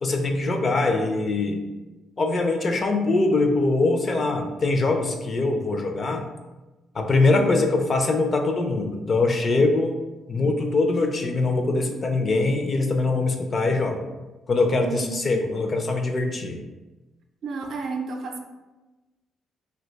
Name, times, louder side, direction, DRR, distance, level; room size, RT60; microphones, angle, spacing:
voice 1, 0.0-1.7 2.2-6.3 6.9-10.0 10.3-14.0 14.5-16.6, left 3 dB, 40° left, 4 dB, 0.4 m, -23 dB
voice 2, 14.8-15.7 17.4-18.4, right 4 dB, 65° right, 3 dB, 0.4 m, -32 dB
2.7 x 2.2 x 3.9 m, 1.1 s
cardioid pair, 90°, 0 cm